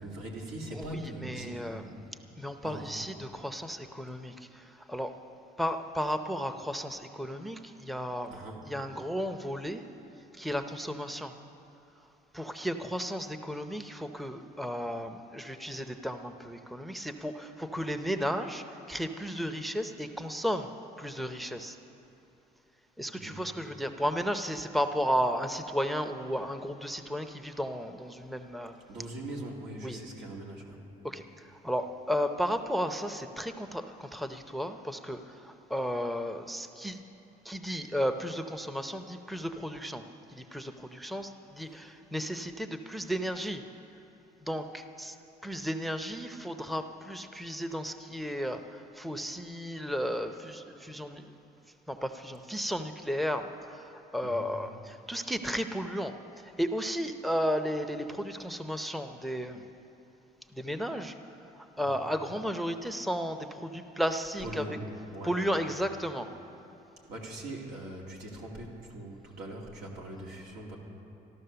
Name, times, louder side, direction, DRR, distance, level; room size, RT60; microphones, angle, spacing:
voice 1, 0.0-2.1 2.6-2.9 8.3-8.7 23.1-23.5 28.9-30.8 54.2-54.6 61.8-62.0 64.4-65.7 67.1-70.8, right 1 dB, 90° right, -2 dB, 2.5 m, -41 dB
voice 2, 0.7-1.8 2.4-5.1 5.6-8.4 8.7-9.9 10.4-11.3 12.3-20.7 21.0-21.8 23.0-28.7 29.8-30.0 31.0-31.2 31.6-37.0 37.4-40.0 40.3-43.6 44.5-45.2 45.4-51.3 51.9-53.8 54.1-56.1 56.6-59.7 60.5-61.1 61.8-64.6 65.2-66.3, equal, ahead, 8 dB, 0.6 m, -34 dB
14.0 x 12.0 x 6.8 m, 2.9 s
cardioid pair, 110°, 17 cm